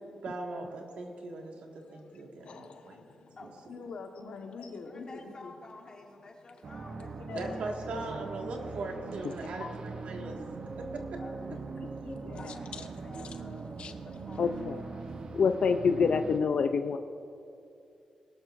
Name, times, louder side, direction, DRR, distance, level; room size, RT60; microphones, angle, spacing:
voice 1, 0.2-3.0 3.4-3.7 7.3-10.4 10.8-11.2, right 3 dB, 80° right, 1 dB, 1.8 m, -40 dB
voice 2, 2.5-3.0 3.7-5.5 7.2-8.2 9.7-9.8 11.7-12.5, left 4 dB, 80° left, 3 dB, 1.2 m, -44 dB
voice 3, 4.9-7.7 9.6-10.1 11.2-11.6 12.3-13.6 14.2-15.1, left 2 dB, 40° left, -1 dB, 2.2 m, -51 dB
sound 1, 6.6-16.4, right 4 dB, 45° right, 0.7 m, -41 dB
voice 4, 14.4-14.8 15.3-17.0, left 5 dB, 60° left, 8 dB, 0.4 m, -27 dB
20.0 x 12.0 x 2.6 m, 2.6 s
wide cardioid pair, 115°, 2 cm